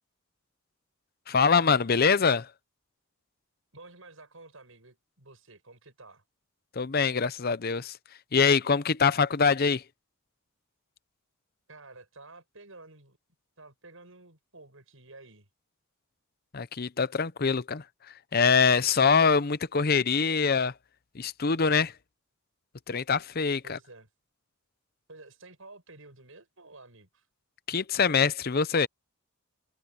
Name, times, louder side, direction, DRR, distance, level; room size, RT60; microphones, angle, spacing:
voice 1, 1.3-2.5 6.8-8.0 8.3-9.8 16.5-17.8 18.3-20.7 21.1-21.9 22.9-23.8 27.7-28.9, left 5 dB, 45° left, 0.7 m, -24 dB
voice 2, 3.7-6.2 11.7-13.2 13.6-15.5 23.6-24.1 25.1-27.3, right 2 dB, 65° right, 8.0 m, -51 dB
head